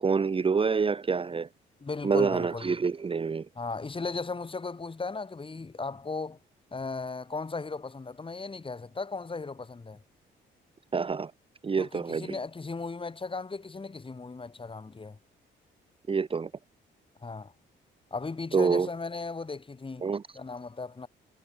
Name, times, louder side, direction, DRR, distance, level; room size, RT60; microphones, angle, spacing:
voice 1, 0.0-1.5 2.0-3.5 10.9-11.3 11.6-12.4 16.1-16.5 18.5-18.9 20.0-20.2, right 5 dB, 25° right, 0.8 m, -27 dB
voice 2, 1.8-2.8 3.6-6.4 6.7-10.0 11.8-15.2 17.2-17.5 18.1-20.1 20.3-21.1, left 4 dB, 25° left, 5.3 m, -36 dB
cardioid pair, 90°, 20 cm